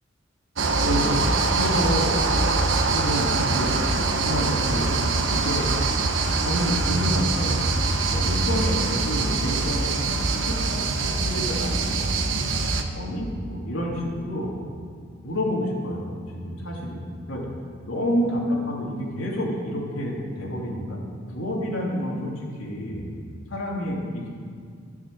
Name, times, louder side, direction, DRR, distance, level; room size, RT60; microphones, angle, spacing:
sound 1, 0.6-12.8, right 3 dB, 70° right, 1.2 m, -23 dB
voice 1, 0.8-1.3 1.5-2.2 2.9-3.8 4.2-4.9 5.3-5.7 6.4-7.6 8.1-12.4 12.9-14.5 15.2-17.5 17.8-21.0 21.3-23.1 23.5-24.3, equal, 90° left, -3 dB, 3.3 m, -29 dB
15.5 x 7.2 x 7.6 m, 2.2 s
head